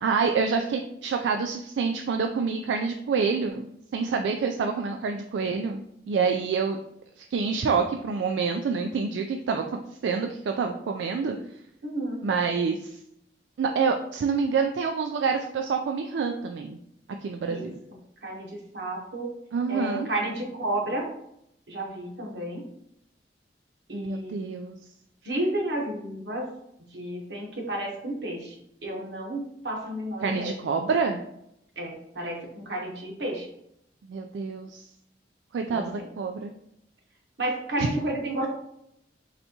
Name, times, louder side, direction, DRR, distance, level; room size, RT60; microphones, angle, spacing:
voice 1, 0.0-5.8 6.1-6.8 7.2-11.4 12.2-13.0 13.6-16.8 17.2-17.8 19.5-20.1 23.9-24.8 30.2-31.2 34.1-34.9 35.5-36.5 37.8-37.9, right 5 dB, 85° right, 4 dB, 0.3 m, -27 dB
voice 2, 11.8-12.2 17.5-17.7 18.2-19.3 19.7-21.0 21.7-22.6 23.9-24.4 25.2-26.4 26.9-28.5 28.8-30.5 31.8-33.5 35.7-35.8 37.4-38.5, right 1 dB, 70° right, 0 dB, 1.0 m, -31 dB
4.1 x 3.4 x 2.8 m, 0.77 s
head